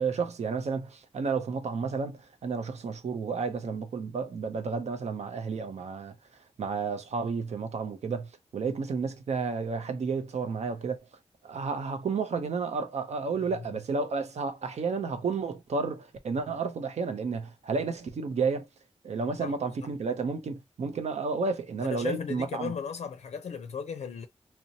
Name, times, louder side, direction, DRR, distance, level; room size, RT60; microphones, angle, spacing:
voice 1, 0.0-6.1 6.6-11.0 11.4-18.7 19.0-22.7, right 4 dB, 85° right, 0.5 m, -31 dB
voice 2, 19.4-19.9 21.8-24.3, left 6 dB, 85° left, 0.4 m, -36 dB
2.7 x 2.1 x 2.6 m
wide cardioid pair, 85°, 11 cm